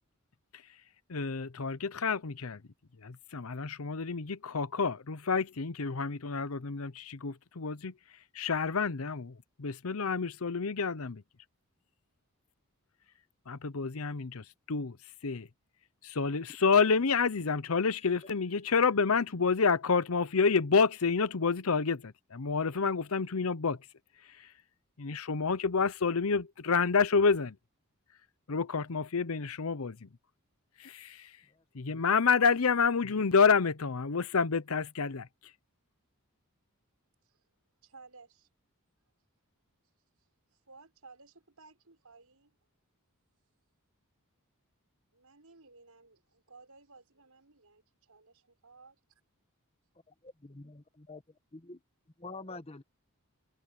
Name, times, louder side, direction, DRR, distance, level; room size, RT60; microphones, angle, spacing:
voice 1, 1.1-2.6 3.0-7.9 8.3-11.2 13.5-15.0 15.2-15.5 16.0-23.8 25.0-27.6 28.5-30.1 30.8-31.3 31.7-35.3, left 5 dB, 70° left, 0.8 m, -29 dB
voice 2, 31.5-32.0 50.4-51.2 51.5-51.8 52.2-52.8, left 3 dB, 25° left, 1.3 m, -46 dB
voice 3, 37.8-38.5 40.2-42.6 45.1-47.8 48.1-49.0, right 4 dB, 80° right, 5.9 m, -57 dB
head